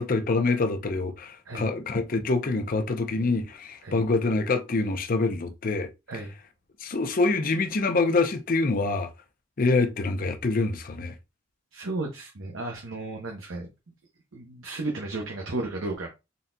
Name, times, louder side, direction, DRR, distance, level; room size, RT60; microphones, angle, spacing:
voice 1, 0.0-5.9 6.8-9.1 9.6-11.1, left 3 dB, 45° left, 0.6 m, -25 dB
voice 2, 11.7-13.7 14.3-16.1, right 2 dB, 85° right, 0.9 m, -33 dB
4.0 x 3.9 x 2.2 m
head